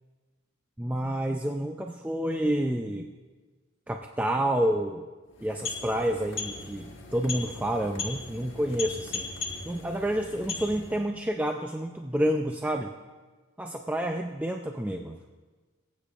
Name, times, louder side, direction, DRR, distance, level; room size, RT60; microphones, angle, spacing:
voice 1, 0.8-3.1 3.9-5.1 5.4-9.3 9.7-12.9 13.6-15.2, right 1 dB, 5° right, 3 dB, 0.3 m, -29 dB
sound 1, 5.3-11.1, left 4 dB, 70° left, 1.5 m, -38 dB
20.0 x 8.4 x 2.4 m, 1.3 s
head